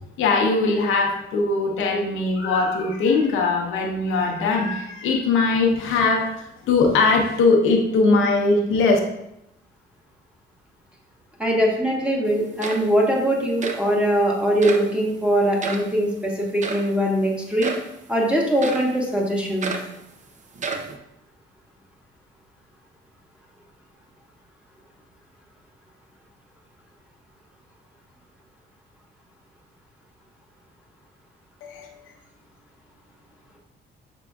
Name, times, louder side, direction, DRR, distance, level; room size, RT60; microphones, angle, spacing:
voice 1, 0.2-9.0 31.6-31.9, left 3 dB, 85° left, 1 dB, 0.8 m, -20 dB
voice 2, 11.4-17.7 18.1-19.7, equal, 5° right, -2 dB, 1.1 m, -21 dB
sound 1, 12.3-12.4 12.6-13.1 13.6-13.9 14.6-14.9 15.6-15.9 16.6-16.9 17.6-17.9 18.6-18.9 19.6-20.0 20.6-21.0, right 4 dB, 40° right, 0.5 m, -30 dB
6.0 x 3.7 x 2.3 m, 0.82 s
cardioid pair, 90°, 20 cm